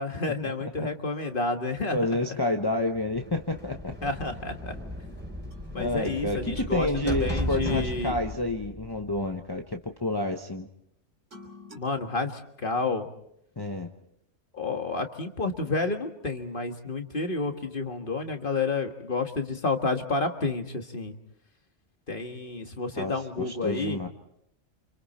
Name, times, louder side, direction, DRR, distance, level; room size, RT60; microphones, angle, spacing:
voice 1, 0.0-2.1 4.0-4.8 5.7-8.2 11.7-13.1 14.5-21.1 22.1-24.0, left 3 dB, 45° left, 5 dB, 1.8 m, -30 dB
voice 2, 1.9-3.9 5.8-10.7 13.6-13.9 23.0-24.1, left 2 dB, 20° left, 3 dB, 1.1 m, -29 dB
sound 1, 2.9-9.7, equal, 10° right, 3.5 m, -36 dB
sound 2, 5.5-9.5 11.3-11.8, left 1 dB, 80° right, 3.7 m, -48 dB
29.5 x 26.0 x 4.3 m, 0.75 s
omnidirectional pair, 1.2 m